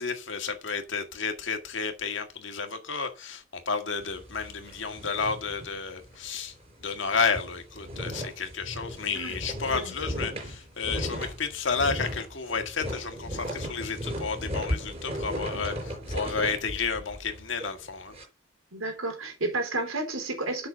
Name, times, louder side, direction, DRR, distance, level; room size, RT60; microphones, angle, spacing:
voice 1, 0.0-6.5 6.8-18.1, left 5 dB, 65° left, 1.7 m, -31 dB
sound 1, 4.0-6.3 6.6-6.7 7.1-18.2, equal, 30° right, 4.9 m, -36 dB
voice 2, 18.7-20.7, right 2 dB, 90° right, 3.8 m, -31 dB
8.1 x 6.0 x 7.0 m
head